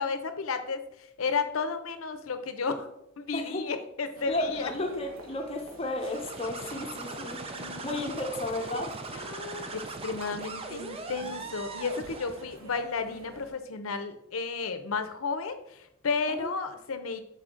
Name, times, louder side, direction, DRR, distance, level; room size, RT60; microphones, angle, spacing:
voice 1, 0.0-2.9 3.2-4.7 7.1-8.0 9.1-17.2, left 4 dB, 85° left, 9 dB, 0.7 m, -33 dB
voice 2, 3.3-3.7 4.3-7.4 7.8-9.0 16.3-16.5, left 2 dB, 30° left, 3 dB, 0.7 m, -33 dB
sound 1, 4.1-13.5, right 1 dB, 75° right, 1.1 m, -49 dB
sound 2, 6.0-12.5, right 3 dB, 30° right, 0.5 m, -40 dB
6.4 x 4.1 x 3.8 m, 0.81 s
head